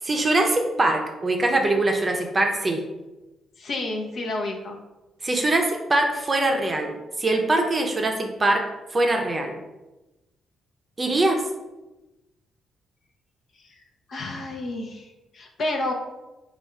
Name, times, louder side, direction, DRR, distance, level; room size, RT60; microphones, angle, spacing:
voice 1, 0.0-2.8 5.2-8.6 8.9-9.5 11.0-11.4, right 2 dB, 25° right, 3 dB, 0.6 m, -22 dB
voice 2, 3.6-4.8 14.1-15.9, left 2 dB, 55° left, 2 dB, 0.7 m, -30 dB
3.4 x 2.4 x 4.3 m, 1.0 s
cardioid pair, 90°, 0 cm